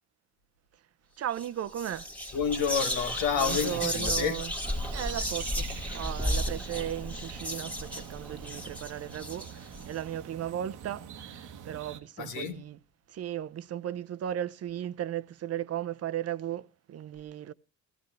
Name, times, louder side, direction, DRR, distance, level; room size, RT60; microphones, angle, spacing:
voice 1, 1.2-2.1 3.4-4.5 4.9-12.8 13.1-17.5, right 11 dB, 55° right, 0.6 m, -36 dB
Whispering, 1.3-1.5 1.7-9.8, equal, 5° left, 1.6 m, -34 dB
voice 2, 2.3-4.4 12.2-12.6, left 7 dB, 90° left, 1.7 m, -29 dB
sound 1, 4.6-12.0, right 8 dB, 80° right, 1.1 m, -45 dB
15.0 x 14.0 x 3.1 m
cardioid pair, 90°, 30 cm